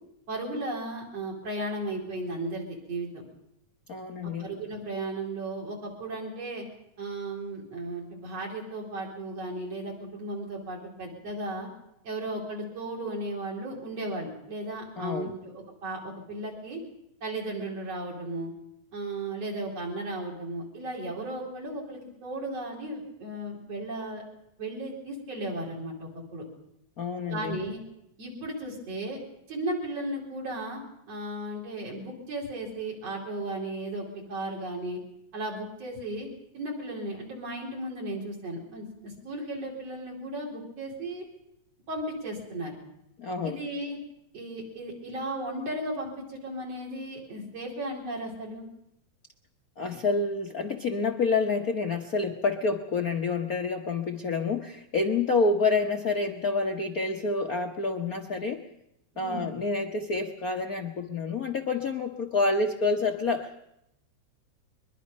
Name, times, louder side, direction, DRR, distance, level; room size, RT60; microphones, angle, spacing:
voice 1, 0.3-3.2 4.4-6.7 7.0-11.7 12.0-16.8 17.2-18.5 18.9-24.2 24.6-26.4 27.3-27.8 28.2-29.2 29.5-30.8 31.1-35.0 35.3-36.3 36.5-41.3 41.9-42.7 43.4-44.0 44.3-48.7 59.2-59.4, right 1 dB, 55° right, -2 dB, 5.2 m, -35 dB
voice 2, 3.9-4.5 15.0-15.3 27.0-27.6 43.2-43.6 49.8-58.6 59.2-63.6, left 3 dB, 70° left, 3 dB, 0.8 m, -28 dB
22.5 x 22.0 x 5.4 m, 0.81 s
omnidirectional pair, 3.4 m